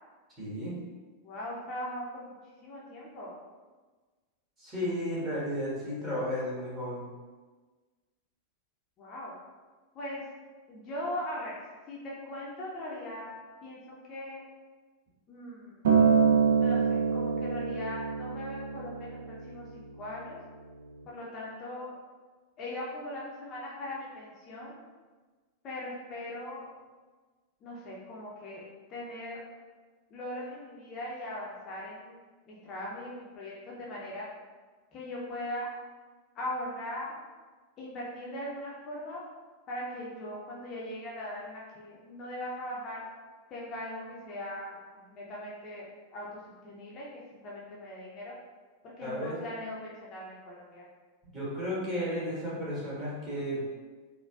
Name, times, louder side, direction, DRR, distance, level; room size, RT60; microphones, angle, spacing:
voice 1, 0.4-0.8 4.6-7.0 49.0-49.4 51.3-53.6, equal, 25° right, -8 dB, 1.5 m, -33 dB
voice 2, 1.2-2.3 2.6-3.3 9.0-9.4 9.9-10.2 10.7-11.6 11.9-13.3 13.6-14.4 15.3-15.8 16.6-20.4 21.1-21.9 22.6-24.7 25.6-26.7 27.6-28.6 28.9-29.4 30.1-32.2 32.5-34.3 34.9-35.7 36.3-37.2 37.8-39.2 39.7-43.0 43.5-45.9 46.1-46.3 46.6-48.3 48.8-50.9, left 1 dB, 35° left, -5 dB, 0.6 m, -40 dB
Acoustic guitar, 15.8-20.1 21.0-21.1, right 6 dB, 60° right, 0.5 m, -26 dB
3.9 x 2.2 x 2.3 m, 1.3 s
figure-of-eight pair, 90°, 0 cm